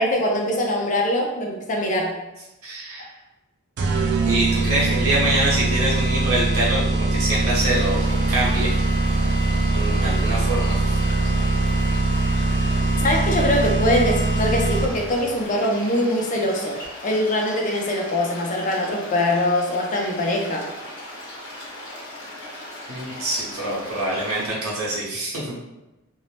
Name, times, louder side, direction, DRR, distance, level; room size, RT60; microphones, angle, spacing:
voice 1, 0.0-2.2 3.0-3.1 13.0-16.8 17.0-20.7, left 1 dB, 35° left, 0 dB, 0.4 m, -23 dB
voice 2, 2.6-3.0 4.2-8.7 9.7-11.0 22.9-25.6, right 1 dB, 75° right, -6 dB, 1.0 m, -25 dB
sound 1, 3.8-15.1, right 2 dB, 50° right, 0.3 m, -22 dB
sound 2, 7.7-24.5, left 1 dB, 55° left, 1.1 m, -38 dB
2.6 x 2.0 x 3.1 m, 0.99 s
head